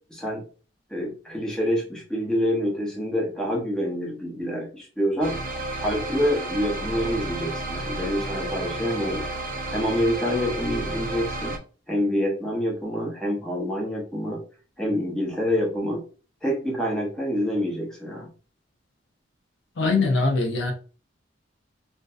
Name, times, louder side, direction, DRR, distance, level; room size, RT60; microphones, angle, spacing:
voice 1, 0.1-0.4 0.9-5.3 5.8-9.3 9.7-11.6 11.9-14.4 14.8-16.0 16.4-18.3, equal, 5° left, 0.7 m, -27 dB
sound 1, 5.2-11.6, right 2 dB, 45° right, 0.5 m, -31 dB
voice 2, 19.8-20.7, left 3 dB, 75° left, 0.6 m, -22 dB
2.6 x 2.2 x 2.3 m
head